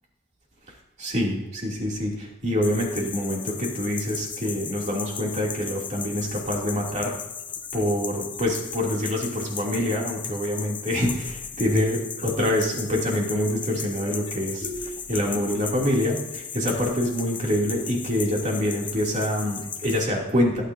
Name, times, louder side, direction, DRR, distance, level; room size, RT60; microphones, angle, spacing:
voice 1, 1.0-7.1 7.7-20.6, left 1 dB, 35° right, -2 dB, 2.8 m, -26 dB
sound 1, 2.6-20.0, left 7 dB, 25° left, 0.7 m, -36 dB
17.0 x 9.3 x 2.7 m, 0.92 s
head